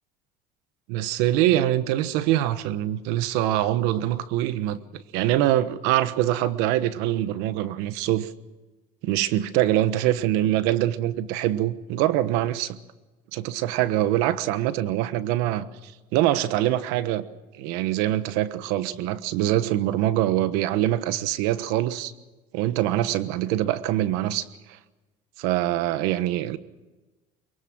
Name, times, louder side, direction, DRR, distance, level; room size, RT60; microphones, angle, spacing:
voice 1, 0.9-8.3 9.0-12.8 13.3-17.2 17.5-22.1 22.5-24.5 25.4-26.6, right 13 dB, 90° right, 1.2 m, -24 dB
23.5 x 23.0 x 6.2 m
cardioid pair, 135°, 16 cm